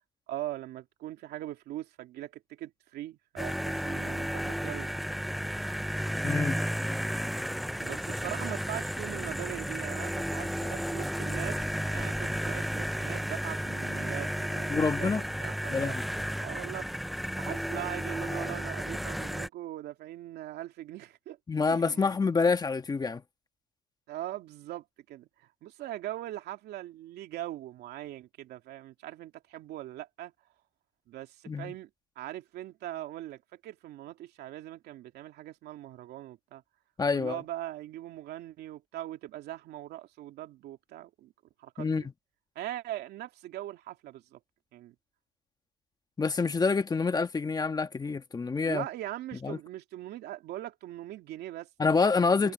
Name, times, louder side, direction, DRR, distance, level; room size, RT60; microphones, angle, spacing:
voice 1, 0.3-4.9 7.8-15.1 15.4-16.0 16.4-16.9 17.4-21.4 21.7-22.1 24.1-30.3 31.1-31.9 32.2-36.6 37.1-41.3 41.6-42.1 42.5-44.4 44.7-44.9 48.6-51.7 52.3-52.5, right 14 dB, 75° right, 2.8 m, -41 dB
sound 1, 3.4-19.5, equal, ahead, 0.3 m, -33 dB
voice 2, 6.2-6.6 14.7-15.2 15.7-16.0 21.5-23.2 31.5-31.7 37.0-37.4 41.8-42.0 46.2-48.9 49.4-49.6 51.8-52.5, left 4 dB, 25° left, 1.4 m, -27 dB
cardioid pair, 110°, 17 cm